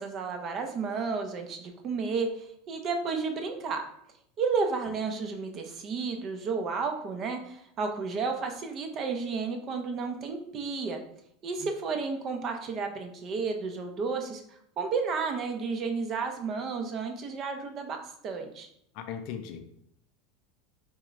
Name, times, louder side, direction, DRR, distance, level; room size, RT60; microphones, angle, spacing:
voice 1, 0.0-3.8 4.4-11.0 11.4-18.7, right 4 dB, 30° right, 4 dB, 0.5 m, -32 dB
voice 2, 18.9-19.8, left 8 dB, 50° left, 7 dB, 0.4 m, -39 dB
4.4 x 2.4 x 3.0 m, 0.70 s
supercardioid pair, 150°, 0 cm